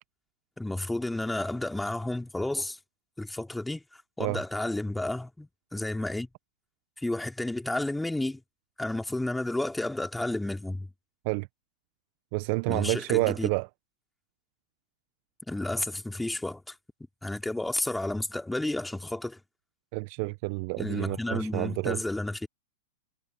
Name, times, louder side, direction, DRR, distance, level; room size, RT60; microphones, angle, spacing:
voice 1, 0.6-2.8 3.2-3.8 4.2-6.3 7.0-8.4 8.8-10.9 12.7-13.5 15.5-16.8 17.2-19.4 20.8-22.5, left 2 dB, 5° left, 3.3 m, -31 dB
voice 2, 12.3-13.7 19.9-22.0, right 30 dB, 50° right, 0.8 m, -29 dB
hypercardioid pair, 100°, 0 cm